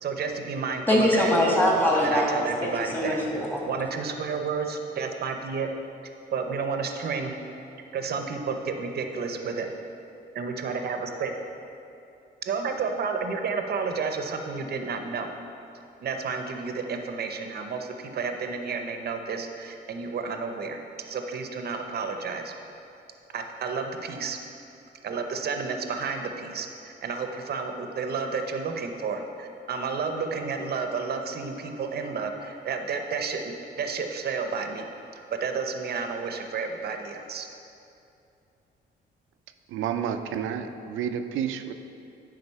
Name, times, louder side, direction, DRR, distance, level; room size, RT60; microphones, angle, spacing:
voice 1, 0.0-1.3 2.0-3.2 3.6-5.7 6.3-7.3 7.9-9.7 10.3-11.3 12.5-15.3 16.0-20.8 21.1-22.5 23.3-24.4 25.0-34.9 35.3-37.5, right 5 dB, 55° right, 5 dB, 0.7 m, -31 dB
voice 2, 0.9-3.7, left 1 dB, 10° left, -3 dB, 1.8 m, -23 dB
voice 3, 39.7-41.7, right 8 dB, 85° right, 8 dB, 0.5 m, -30 dB
9.8 x 3.8 x 5.5 m, 2.7 s
cardioid pair, 90°, 20 cm